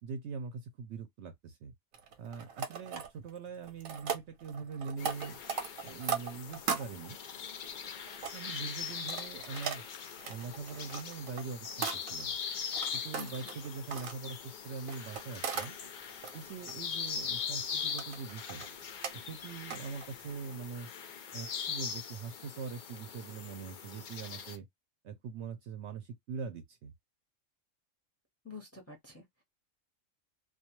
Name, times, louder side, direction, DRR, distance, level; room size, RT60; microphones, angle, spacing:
voice 1, 0.0-1.7 2.2-5.4 5.8-7.2 8.3-9.8 10.3-12.4 12.9-15.8 16.3-18.6 19.1-20.9 21.3-24.7 25.0-26.9, right 5 dB, 65° right, 0.8 m, -42 dB
sound 1, 1.9-3.4 3.6-6.9 7.5-8.3 8.9-12.3 12.7-14.1 14.9-15.7 16.1-16.7 17.2-17.6 17.9-18.7 19.0-19.1 19.7-20.2 20.5-20.6, right 6 dB, 90° right, 1.1 m, -38 dB
sound 2, 5.0-24.6, left 7 dB, 65° left, 0.4 m, -41 dB
voice 2, 13.2-13.5 28.4-29.4, left 5 dB, 15° left, 0.7 m, -48 dB
2.3 x 2.3 x 2.9 m
omnidirectional pair, 1.4 m